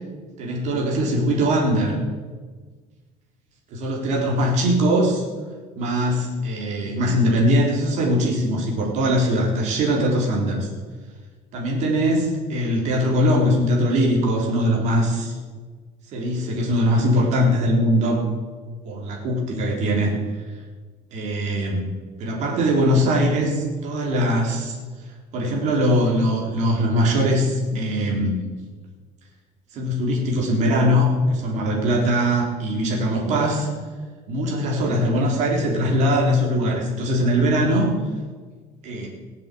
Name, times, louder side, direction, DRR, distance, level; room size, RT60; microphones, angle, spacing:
voice 1, 0.4-2.0 3.7-5.2 5.8-10.7 11.5-15.4 16.1-18.2 18.8-20.1 21.1-21.9 22.2-24.8 25.3-28.4 29.7-33.7 34.3-37.9 38.8-39.1, equal, 50° right, -1 dB, 3.6 m, -21 dB
18.5 x 7.5 x 7.7 m, 1.5 s
cardioid pair, 170°, 15 cm